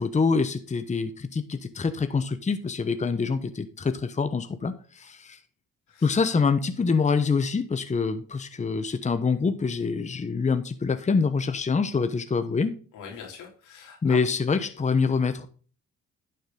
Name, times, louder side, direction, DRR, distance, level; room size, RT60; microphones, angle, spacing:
voice 1, 0.0-5.4 6.0-12.7 14.0-15.5, left 5 dB, 25° left, 10 dB, 1.0 m, -25 dB
voice 2, 12.9-14.2, left 6 dB, 90° left, 2 dB, 3.2 m, -42 dB
11.5 x 6.6 x 3.8 m, 0.40 s
cardioid pair, 90°, 30 cm